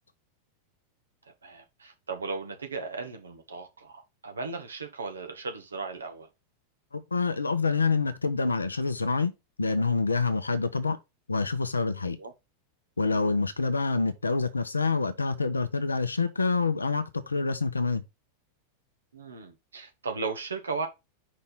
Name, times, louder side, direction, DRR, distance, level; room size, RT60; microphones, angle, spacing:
voice 1, 1.2-6.3 12.2-12.3 13.2-13.3 19.1-20.9, right 4 dB, 75° right, 1.6 m, -36 dB
voice 2, 6.9-9.3 9.6-11.0 11.3-12.2 13.0-18.0, left 4 dB, 80° left, 0.9 m, -27 dB
5.4 x 4.2 x 5.4 m
figure-of-eight pair, 90°, 0 cm